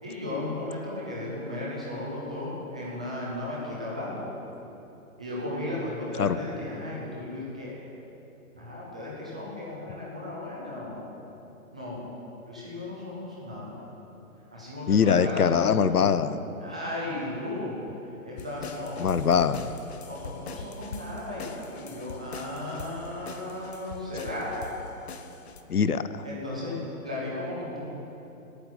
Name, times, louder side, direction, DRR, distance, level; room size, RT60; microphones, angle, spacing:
voice 1, 0.0-4.3 5.2-7.8 8.5-11.1 11.7-12.0 12.5-13.7 14.5-16.2 16.6-17.8 18.2-19.0 20.1-24.6 26.2-27.9, left 1 dB, 5° right, -6 dB, 0.5 m, -35 dB
voice 2, 14.9-16.4 19.0-19.7 25.7-26.3, left 7 dB, 90° left, 13 dB, 0.9 m, -23 dB
sound 1, 18.4-25.6, left 4 dB, 45° left, 1.3 m, -42 dB
18.5 x 8.8 x 8.2 m, 2.9 s
hypercardioid pair, 150°, 44 cm